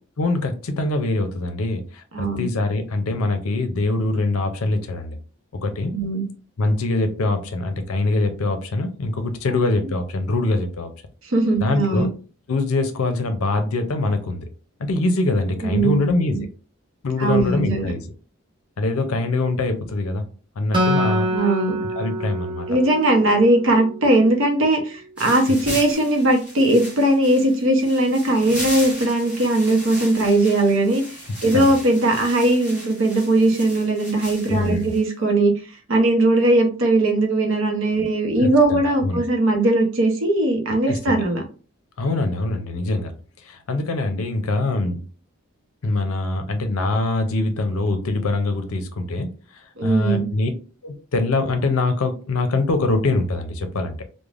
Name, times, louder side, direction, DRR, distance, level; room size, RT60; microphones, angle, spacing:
voice 1, 0.2-5.2 5.5-5.9 6.6-10.9 11.6-12.1 12.5-14.5 14.8-16.5 17.0-18.0 18.8-20.3 20.6-21.3 22.0-22.7 31.5-31.7 34.5-34.9 38.4-39.2 40.9-41.1 42.0-43.1 43.4-45.0 45.8-50.5 50.8-54.0, left 2 dB, 75° left, 8 dB, 0.5 m, -23 dB
voice 2, 2.1-2.5 5.9-6.2 11.3-12.1 15.6-16.4 17.2-17.9 21.3-21.8 22.7-31.0 31.4-35.5 35.9-41.4 49.8-50.3, right 1 dB, 60° right, 2 dB, 0.7 m, -19 dB
Acoustic guitar, 20.7-24.2, equal, 20° right, 0.5 m, -25 dB
sound 1, 25.2-35.0, equal, 5° right, 1.0 m, -36 dB
3.2 x 2.1 x 2.4 m, 0.37 s
head